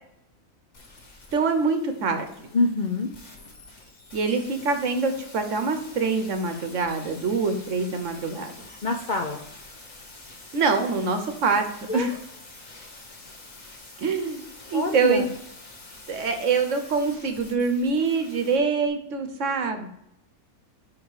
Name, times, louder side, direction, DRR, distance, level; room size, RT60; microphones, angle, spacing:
sound 1, 0.7-18.6 18.9-19.0, left 2 dB, 50° left, 1.5 m, -47 dB
voice 1, 1.3-2.3 4.1-8.6 10.5-11.7 11.9-12.2 14.0-14.4 14.7-15.3 16.1-19.9, right 4 dB, 60° right, 7 dB, 1.0 m, -25 dB
voice 2, 2.5-3.1 8.8-9.4 11.9-12.1 14.7-15.3, left 3 dB, 75° left, 3 dB, 0.4 m, -25 dB
5.3 x 4.9 x 4.8 m, 0.78 s
omnidirectional pair, 1.7 m